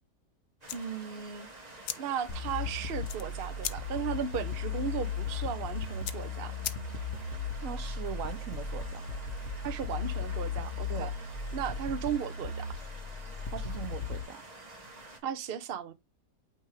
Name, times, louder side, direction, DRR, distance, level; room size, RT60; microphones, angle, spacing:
sound 1, 0.6-7.3, left 11 dB, 75° left, 1.1 m, -43 dB
sound 2, 0.6-15.2, right 2 dB, 30° right, 1.7 m, -49 dB
voice 1, 0.7-1.5 2.0-6.6 9.6-11.1 11.5-12.7 15.2-15.9, right 8 dB, 50° right, 0.9 m, -36 dB
sound 3, 2.3-14.2, left 5 dB, 55° left, 1.3 m, -36 dB
voice 2, 7.6-9.0 10.9-11.1 13.5-14.4, right 8 dB, 70° right, 1.1 m, -40 dB
8.8 x 3.4 x 3.3 m
omnidirectional pair, 1.5 m